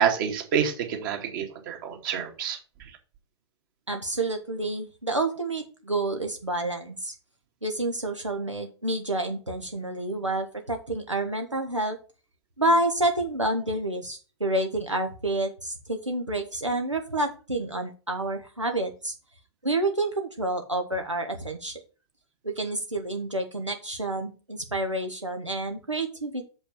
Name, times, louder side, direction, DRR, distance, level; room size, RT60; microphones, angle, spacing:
voice 1, 0.0-2.6, right 8 dB, 45° right, 3 dB, 2.2 m, -27 dB
voice 2, 3.9-7.1 7.6-12.0 12.6-19.1 19.6-21.8 22.4-26.5, right 2 dB, 90° right, 4 dB, 1.1 m, -29 dB
6.7 x 5.6 x 6.1 m, 0.36 s
figure-of-eight pair, 105°, 15 cm